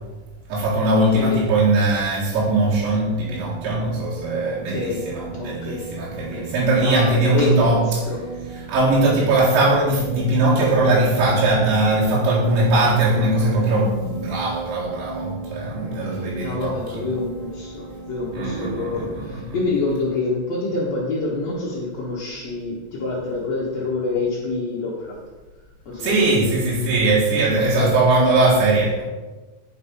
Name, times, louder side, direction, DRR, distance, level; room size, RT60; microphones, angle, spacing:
voice 1, 0.5-7.8 8.7-16.7 18.3-19.6 26.0-29.0, right 2 dB, 90° right, -6 dB, 4.3 m, -20 dB
voice 2, 1.2-1.5 4.4-5.1 5.3-5.9 6.1-6.5 6.8-8.2 15.8-25.2 25.8-26.6 27.8-27.9, left 3 dB, 70° left, -6 dB, 1.5 m, -27 dB
sound 1, 3.0-19.1, right 4 dB, 70° right, 2.1 m, -37 dB
8.5 x 6.6 x 5.7 m, 1.2 s
omnidirectional pair, 5.1 m